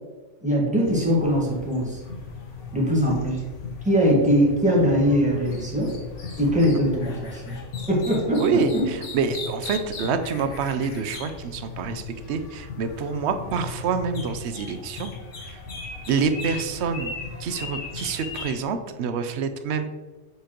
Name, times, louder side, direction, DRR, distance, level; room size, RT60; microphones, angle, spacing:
voice 1, 0.4-2.0 2.7-3.4 3.8-5.9 6.4-7.5 7.9-8.9, equal, 5° right, -5 dB, 1.5 m, -21 dB
sound 1, 0.8-18.6, left 4 dB, 90° left, 1.3 m, -37 dB
voice 2, 8.4-15.1 15.4-15.6 16.1-17.1 17.4-20.0, right 5 dB, 70° right, 9 dB, 0.8 m, -27 dB
7.0 x 4.7 x 3.0 m, 1.3 s
omnidirectional pair, 1.2 m